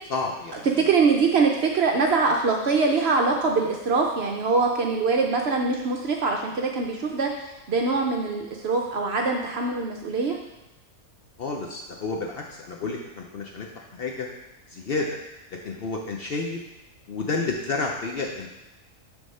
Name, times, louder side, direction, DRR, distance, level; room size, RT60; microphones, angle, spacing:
voice 1, 0.1-0.8 11.4-14.3 14.7-15.2 15.6-16.6 17.1-18.5, left 3 dB, 55° left, 0 dB, 0.7 m, -30 dB
voice 2, 0.8-7.3 7.7-10.4, right 4 dB, 60° right, 2 dB, 0.7 m, -23 dB
6.2 x 3.5 x 5.4 m, 0.98 s
omnidirectional pair, 1.5 m